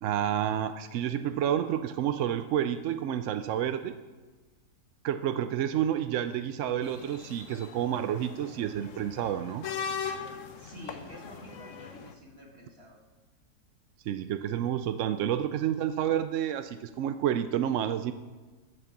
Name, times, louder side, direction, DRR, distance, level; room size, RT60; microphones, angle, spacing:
voice 1, 0.0-3.9 5.0-9.7 14.1-18.1, right 10 dB, 70° right, 10 dB, 0.7 m, -29 dB
sound 1, 6.8-12.1, left 6 dB, 55° left, 1.0 m, -40 dB
voice 2, 10.6-13.0, equal, 40° right, 0 dB, 2.4 m, -48 dB
10.0 x 9.0 x 7.2 m, 1.3 s
omnidirectional pair, 1.8 m